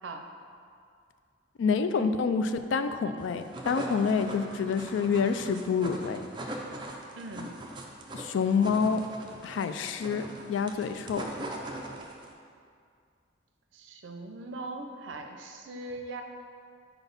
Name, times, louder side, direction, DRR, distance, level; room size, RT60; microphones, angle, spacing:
voice 1, 1.6-6.2 8.1-9.0 9.4-10.2 10.5-11.3, left 5 dB, 80° left, 10 dB, 0.3 m, -27 dB
sound 1, 3.2-12.3, right 1 dB, 25° right, 0.4 m, -41 dB
voice 2, 7.2-7.7 13.7-16.2, right 2 dB, 80° right, 4 dB, 0.5 m, -40 dB
4.4 x 4.0 x 5.2 m, 2.3 s
head